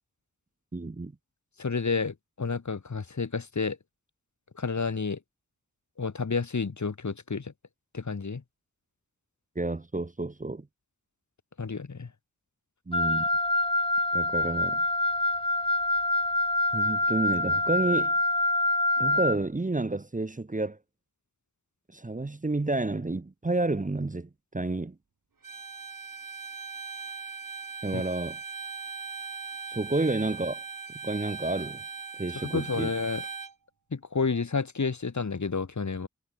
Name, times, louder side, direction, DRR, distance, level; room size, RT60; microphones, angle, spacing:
voice 1, 0.7-1.1 9.6-10.7 12.9-13.3 14.1-14.8 16.7-18.1 19.0-20.8 21.9-25.0 27.8-28.4 29.7-30.6 31.0-31.8 32.2-32.9, right 2 dB, 25° right, 0.7 m, -30 dB
voice 2, 1.6-3.8 4.6-5.2 6.0-7.5 7.9-8.4 11.6-12.1 27.9-28.0 32.4-33.2 33.9-36.1, left 4 dB, 60° left, 1.2 m, -30 dB
Wind instrument woodwind instrument, 12.9-19.4, left 2 dB, 15° left, 1.1 m, -26 dB
Bowed string instrument, 25.4-33.5, right 5 dB, 80° right, 1.4 m, -39 dB
wide cardioid pair, 45°, 33 cm